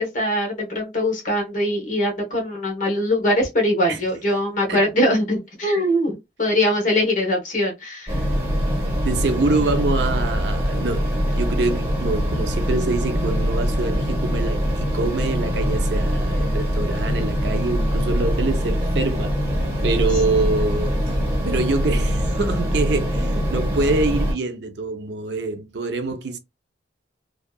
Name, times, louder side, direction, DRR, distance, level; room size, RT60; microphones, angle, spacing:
voice 1, 0.0-8.2, left 1 dB, 45° left, 1.1 m, -22 dB
sound 1, 8.1-24.3, equal, 15° right, 1.4 m, -23 dB
voice 2, 9.0-19.4 19.8-21.0 21.4-26.4, right 3 dB, 65° right, 0.6 m, -25 dB
2.7 x 2.3 x 2.2 m
head